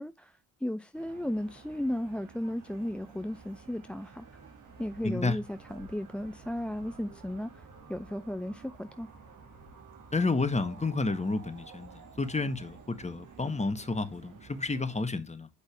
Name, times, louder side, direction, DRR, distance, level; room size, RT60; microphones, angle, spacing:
voice 1, 0.0-4.3 4.8-7.6 7.9-9.1, left 1 dB, 5° left, 0.5 m, -35 dB
sound 1, 0.9-15.0, right 5 dB, 65° right, 2.3 m, -52 dB
voice 2, 5.0-5.4 10.1-11.9 12.2-15.5, left 3 dB, 20° left, 1.6 m, -30 dB
8.3 x 5.3 x 3.4 m
supercardioid pair, 50°, 34 cm